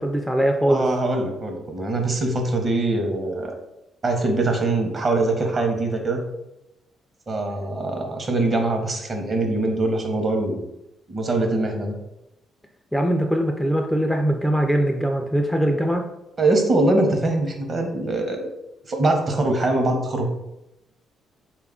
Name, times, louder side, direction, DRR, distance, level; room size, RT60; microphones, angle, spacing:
voice 1, 0.0-0.9 12.9-16.1, right 1 dB, ahead, 3 dB, 0.3 m, -21 dB
voice 2, 0.7-3.5 4.0-6.3 7.3-10.7 11.1-12.0 16.4-18.5 18.9-20.3, right 2 dB, 35° right, 3 dB, 0.7 m, -23 dB
3.6 x 2.3 x 3.6 m, 0.89 s
cardioid pair, 90°, 0 cm